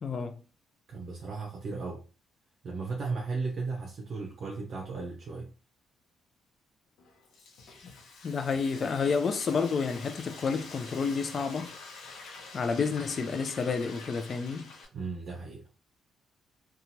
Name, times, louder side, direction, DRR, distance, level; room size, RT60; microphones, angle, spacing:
voice 1, 0.0-0.4 8.2-11.7 12.5-14.7, left 5 dB, 45° left, 0.4 m, -30 dB
voice 2, 0.9-2.0 2.6-5.5 14.9-15.6, right 4 dB, 55° right, 0.6 m, -35 dB
Frying (food), 7.0-14.9, left 3 dB, 85° left, 0.8 m, -47 dB
2.8 x 2.3 x 2.7 m
cardioid pair, 90°, 0 cm